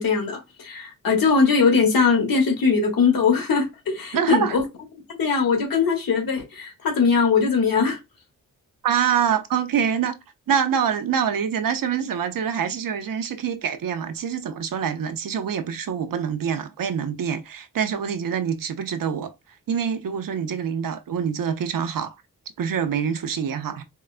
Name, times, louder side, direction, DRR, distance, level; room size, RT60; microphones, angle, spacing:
voice 1, 0.0-4.7 5.2-8.0, left 5 dB, 85° left, 1.3 m, -20 dB
voice 2, 4.1-4.6 8.8-10.2 10.5-19.3 19.7-22.2 22.6-23.8, right 7 dB, 75° right, 0.6 m, -25 dB
4.6 x 2.1 x 2.4 m
wide cardioid pair, 145°, 34 cm